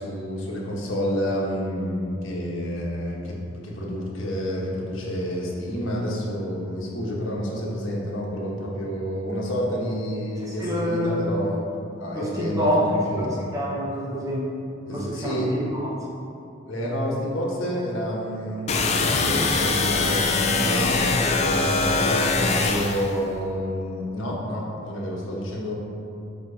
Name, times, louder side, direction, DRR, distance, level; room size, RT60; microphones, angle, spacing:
voice 1, 0.0-11.6 12.0-13.4 14.8-15.5 16.6-21.1 21.5-25.7, equal, 80° left, -3 dB, 1.2 m, -29 dB
voice 2, 10.4-11.2 12.1-14.5 14.9-16.0, equal, 15° right, -6 dB, 0.8 m, -27 dB
sound 1, 18.7-23.1, left 3 dB, 35° left, 0.4 m, -22 dB
7.4 x 2.9 x 4.9 m, 2.7 s
head